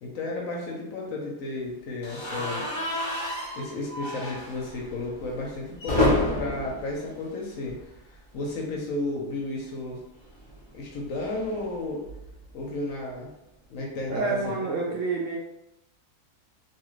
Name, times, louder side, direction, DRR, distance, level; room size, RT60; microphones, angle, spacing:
voice 1, 0.0-2.7 3.5-7.8 8.3-10.0 10.7-12.1 12.5-13.3 13.7-14.5, left 2 dB, 65° left, -1 dB, 0.9 m, -33 dB
sound 1, 2.0-8.1 8.4-8.6 8.8-8.9 10.2-12.5, left 1 dB, 30° left, 0.5 m, -31 dB
voice 2, 14.1-15.4, right 3 dB, 70° right, -2 dB, 0.8 m, -28 dB
2.8 x 2.4 x 3.1 m, 0.86 s
omnidirectional pair, 1.7 m